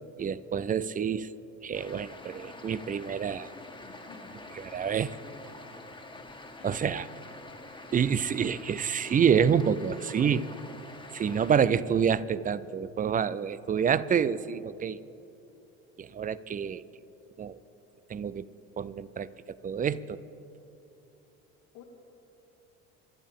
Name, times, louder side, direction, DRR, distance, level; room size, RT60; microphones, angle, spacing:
voice 1, 0.2-1.3 1.6-3.5 4.6-5.1 6.6-7.1 7.9-10.5 11.1-15.0 16.0-16.8 17.4-17.6 18.1-18.5 18.8-20.2, right 7 dB, 25° right, 17 dB, 0.4 m, -27 dB
sound 1, 1.7-11.6, left 2 dB, 10° left, 1.6 m, -46 dB
voice 2, 3.8-4.4 6.6-6.9 21.7-21.8, left 8 dB, 75° left, 1 dB, 2.5 m, -52 dB
23.0 x 11.5 x 3.6 m, 2.8 s
hypercardioid pair, 75°, 38 cm